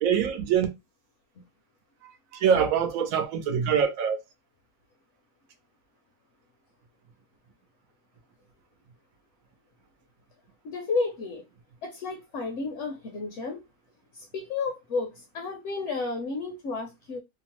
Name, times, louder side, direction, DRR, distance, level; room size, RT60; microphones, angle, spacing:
voice 1, 0.0-0.7 2.0-4.2, right 7 dB, 80° right, 1.1 m, -24 dB
voice 2, 10.6-11.4 11.8-13.6 14.1-17.2, left 3 dB, 65° left, 0.9 m, -32 dB
2.9 x 2.0 x 2.8 m
omnidirectional pair, 1.4 m